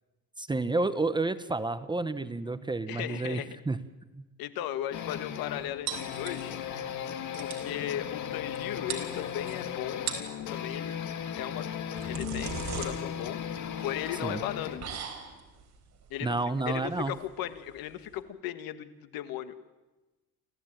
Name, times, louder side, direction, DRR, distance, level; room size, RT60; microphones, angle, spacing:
voice 1, 0.4-3.8 4.2-4.3 14.2-14.4 16.2-17.2, right 3 dB, 10° right, 12 dB, 0.8 m, -30 dB
voice 2, 2.9-3.6 4.4-6.5 7.4-10.0 10.5-11.0 11.3-11.7 12.1-13.4 13.8-14.8 16.1-16.4 16.7-19.6, left 12 dB, 70° left, 11 dB, 1.6 m, -36 dB
sound 1, 4.9-15.0, left 8 dB, 55° left, 2.0 m, -36 dB
sound 2, 5.9-6.7 7.1-7.2 7.3-7.7 8.6-8.7 8.9-9.6 9.9-10.4 11.6-18.2, right 7 dB, 45° right, 4.3 m, -40 dB
29.0 x 14.5 x 9.1 m, 1.1 s
cardioid pair, 130°, 36 cm